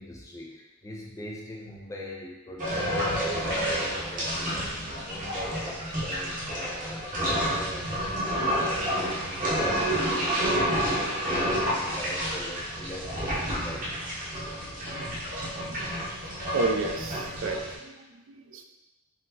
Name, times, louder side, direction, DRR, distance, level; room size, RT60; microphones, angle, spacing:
voice 1, 0.0-14.3, equal, 15° left, -2 dB, 0.4 m, -42 dB
sound 1, 2.6-17.8, equal, 40° right, 0.8 m, -29 dB
voice 2, 16.5-18.6, right 3 dB, 60° right, 4 dB, 0.3 m, -31 dB
4.0 x 2.0 x 2.7 m, 1.0 s
head